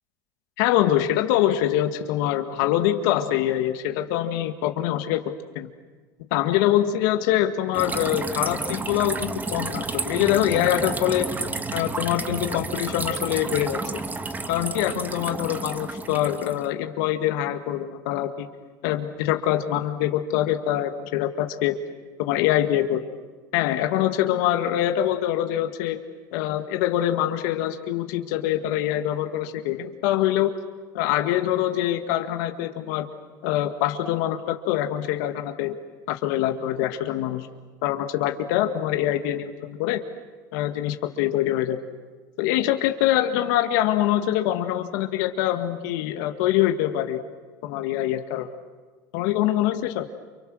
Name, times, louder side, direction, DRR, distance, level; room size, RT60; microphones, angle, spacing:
voice 1, 0.6-5.7 6.3-11.3 11.7-13.8 14.5-18.5 18.8-21.8 22.2-23.0 23.5-26.0 26.3-30.5 30.9-33.1 33.4-35.8 36.1-37.5 37.8-40.0 40.5-41.8 42.4-47.2 47.6-48.5 49.1-50.1, left 12 dB, 70° left, 6 dB, 1.9 m, -24 dB
sound 1, 7.7-16.7, right 3 dB, 15° right, 1.5 m, -31 dB
29.5 x 29.0 x 6.4 m, 1.4 s
supercardioid pair, 100°, 10 cm